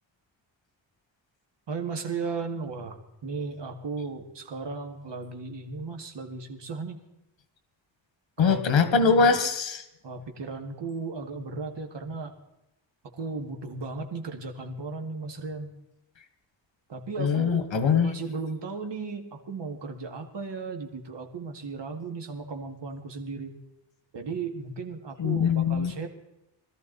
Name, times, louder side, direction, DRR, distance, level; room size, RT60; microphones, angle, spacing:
voice 1, 1.7-7.0 8.4-8.8 10.0-12.3 13.1-15.7 16.9-17.6 18.0-23.5 24.1-26.1, right 4 dB, 65° right, 4 dB, 2.1 m, -35 dB
voice 2, 8.4-9.8 17.2-18.1 25.2-25.9, left 5 dB, 80° left, 9 dB, 1.7 m, -22 dB
21.0 x 13.5 x 4.1 m, 0.90 s
wide cardioid pair, 145°, 45 cm